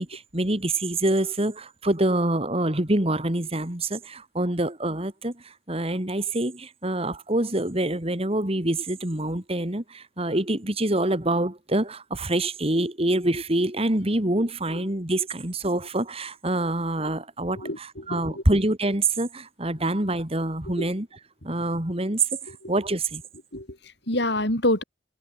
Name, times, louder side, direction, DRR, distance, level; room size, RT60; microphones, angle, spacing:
voice 1, 0.0-21.1 21.4-23.2, right 1 dB, 30° right, 2.4 m, -26 dB
voice 2, 17.6-18.4 20.8-20.9 22.5-22.7 23.5-24.8, left 1 dB, 60° left, 7.8 m, -28 dB
head